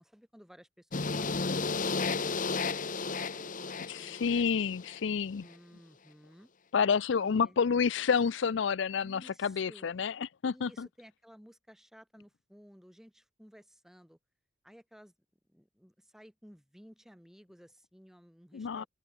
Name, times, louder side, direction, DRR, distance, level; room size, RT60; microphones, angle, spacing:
voice 1, 0.0-4.4 5.4-6.5 7.2-7.6 9.0-9.9 10.5-14.2 14.6-15.1 15.5-18.9, equal, ahead, 4.1 m, -57 dB
sound 1, 0.9-5.0, left 4 dB, 45° left, 1.1 m, -33 dB
voice 2, 3.9-5.5 6.7-10.2 10.4-10.9 18.5-18.8, left 6 dB, 70° left, 0.4 m, -29 dB
open air
head